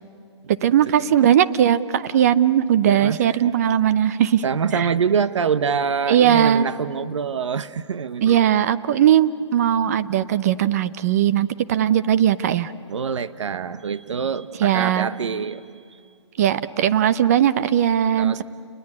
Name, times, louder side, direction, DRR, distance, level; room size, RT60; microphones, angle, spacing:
voice 1, 0.5-4.4 4.8-4.9 6.1-6.7 8.2-12.7 14.6-15.1 16.4-18.4, right 10 dB, 30° right, 14 dB, 0.7 m, -19 dB
voice 2, 2.9-3.5 4.4-8.4 12.9-16.0 18.2-18.4, right 6 dB, 80° right, 13 dB, 0.9 m, -25 dB
29.5 x 20.5 x 9.7 m, 2.3 s
hypercardioid pair, 165°, 15 cm